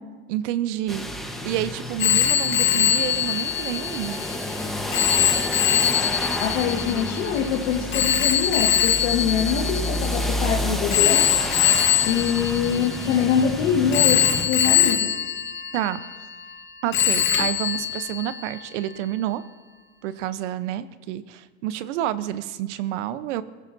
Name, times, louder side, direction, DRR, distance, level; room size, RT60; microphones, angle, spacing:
voice 1, 0.3-4.2 15.7-16.0 16.8-19.4 20.0-23.4, right 12 dB, 75° right, 14 dB, 0.8 m, -29 dB
sound 1, 0.9-14.4, left 1 dB, ahead, 1.1 m, -30 dB
Telephone, 2.0-10.3 10.9-13.4 13.9-16.6 16.9-18.6, left 10 dB, 35° left, 1.3 m, -23 dB
voice 2, 6.4-11.2 12.0-14.2 14.4-15.3, left 7 dB, 80° left, -2 dB, 1.8 m, -24 dB
21.5 x 15.5 x 2.7 m, 1.4 s
supercardioid pair, 130°, 36 cm